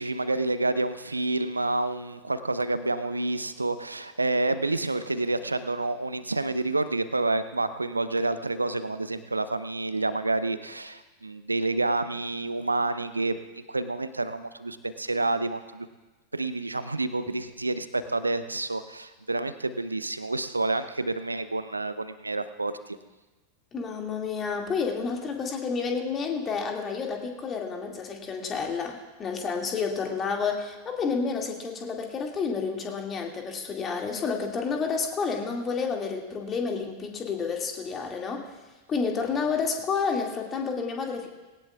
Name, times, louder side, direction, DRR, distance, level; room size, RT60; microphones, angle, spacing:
voice 1, 0.0-15.9 16.3-23.0, right 2 dB, 80° right, 12 dB, 0.7 m, -29 dB
voice 2, 23.7-38.5 38.9-41.3, left 5 dB, 25° left, 2 dB, 2.2 m, -30 dB
19.5 x 18.0 x 2.4 m, 1.2 s
figure-of-eight pair, 90°, 0 cm